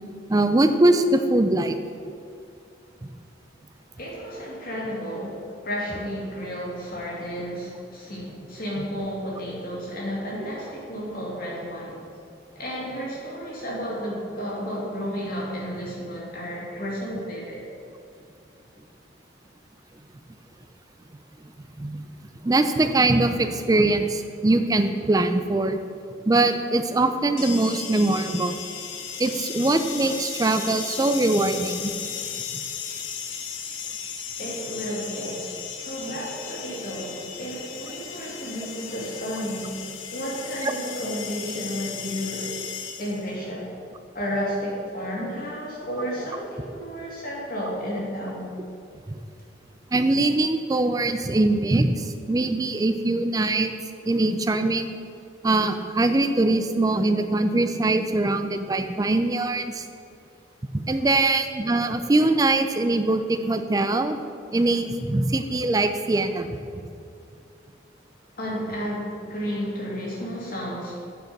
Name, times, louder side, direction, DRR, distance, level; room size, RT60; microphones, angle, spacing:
voice 1, 0.3-1.8 3.0-3.1 10.4-10.5 21.8-22.1 22.4-25.8 26.3-28.6 29.2-31.9 40.6-40.7 49.1-49.2 49.9-53.7 54.1-54.9 55.4-59.9 60.9-64.2 64.5-66.9, right 2 dB, 20° right, 8 dB, 0.4 m, -22 dB
voice 2, 4.0-12.0 12.5-17.6 34.4-39.8 40.1-42.6 43.0-43.7 44.1-48.5 68.4-71.0, equal, 50° left, -4 dB, 2.2 m, -32 dB
sound 1, 27.4-43.3, left 7 dB, 90° left, 0.8 m, -35 dB
9.1 x 5.1 x 5.3 m, 2.4 s
head